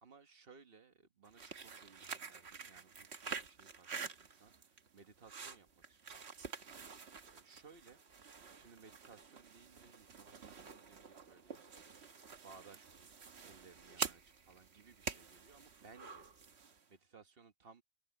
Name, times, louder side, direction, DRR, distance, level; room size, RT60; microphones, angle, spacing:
voice 1, 0.0-6.2 7.2-8.0 8.6-11.9 12.4-16.3 16.9-17.8, right 5 dB, 65° right, 1.5 m, -61 dB
sound 1, 1.3-16.9, right 5 dB, 85° right, 1.6 m, -48 dB
omnidirectional pair, 1.1 m